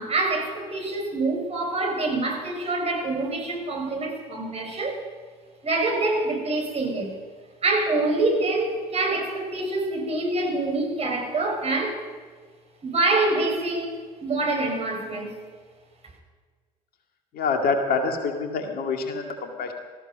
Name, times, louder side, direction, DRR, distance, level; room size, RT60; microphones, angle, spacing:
voice 1, 0.0-5.0 5.6-7.1 7.6-12.0 12.8-15.4, right 2 dB, 30° right, 1 dB, 4.9 m, -26 dB
voice 2, 17.3-19.7, left 4 dB, 50° left, 4 dB, 2.1 m, -26 dB
19.0 x 14.5 x 5.2 m, 1.5 s
figure-of-eight pair, 55°, 20 cm